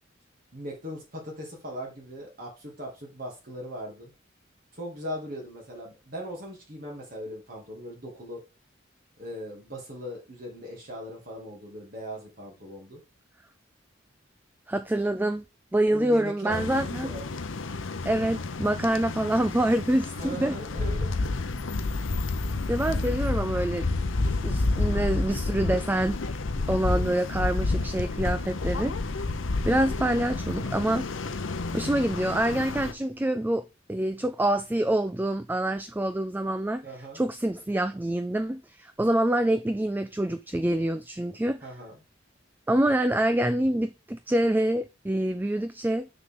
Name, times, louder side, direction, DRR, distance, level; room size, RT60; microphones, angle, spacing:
voice 1, 0.5-4.1 4.7-8.4 9.2-13.0 15.9-17.4 20.2-21.1 26.9-27.2 36.8-37.2 41.6-42.0, equal, 45° right, 2.5 m, -39 dB
voice 2, 14.7-15.4 15.7-17.1 18.0-20.6 22.7-23.9 24.4-26.4 26.7-29.0 29.6-31.1 31.7-36.9 37.1-41.7 42.7-46.1, right 1 dB, 10° right, 0.3 m, -26 dB
sound 1, 16.5-32.9, left 3 dB, 85° left, 0.8 m, -30 dB
6.9 x 6.4 x 3.8 m
head